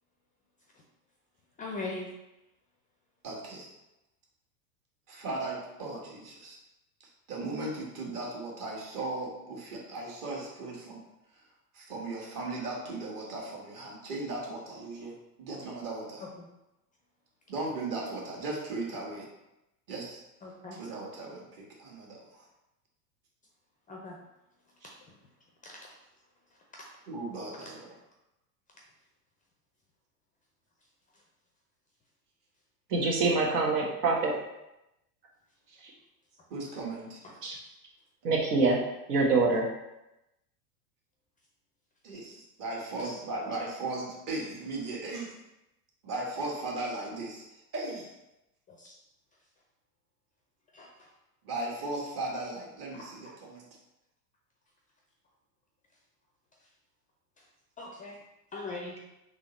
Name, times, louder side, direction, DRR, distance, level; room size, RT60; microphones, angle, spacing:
voice 1, 1.6-2.1 20.4-20.8 23.9-24.2 25.6-25.8 48.7-49.0 50.7-50.9 52.9-53.1 57.8-58.2 58.5-59.0, left 3 dB, 15° left, -1 dB, 0.4 m, -39 dB
voice 2, 3.2-3.7 5.1-6.5 7.0-11.0 11.3-11.4 11.7-16.2 17.5-19.3 19.9-20.2 20.7-22.5 24.8-24.9 27.1-27.9 33.2-33.3 35.7-35.9 36.5-37.2 42.0-45.4 46.0-48.1 51.4-53.7, right 2 dB, 40° right, -2 dB, 1.6 m, -37 dB
voice 3, 32.9-34.3 37.4-37.6 38.2-38.8 39.1-39.6, right 3 dB, 75° right, -2 dB, 1.4 m, -25 dB
3.7 x 3.2 x 4.0 m, 0.92 s
hypercardioid pair, 105°, 49 cm